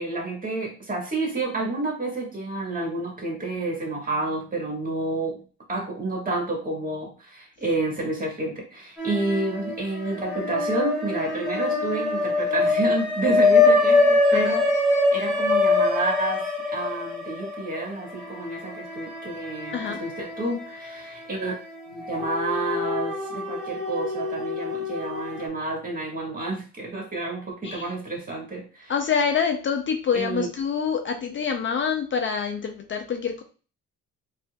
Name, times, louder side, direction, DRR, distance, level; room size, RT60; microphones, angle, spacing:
voice 1, 0.0-5.4 5.7-14.6 15.1-16.4 16.7-21.5 21.9-28.9 30.1-30.5, right 2 dB, 30° right, -2 dB, 1.7 m, -29 dB
sound 1, 9.0-9.8 10.1-20.4 20.8-20.9 22.0-25.4, left 3 dB, ahead, 1.4 m, -24 dB
voice 2, 28.9-33.4, left 6 dB, 40° left, 5 dB, 0.5 m, -26 dB
4.2 x 2.4 x 2.2 m, 0.37 s
cardioid pair, 90°, 30 cm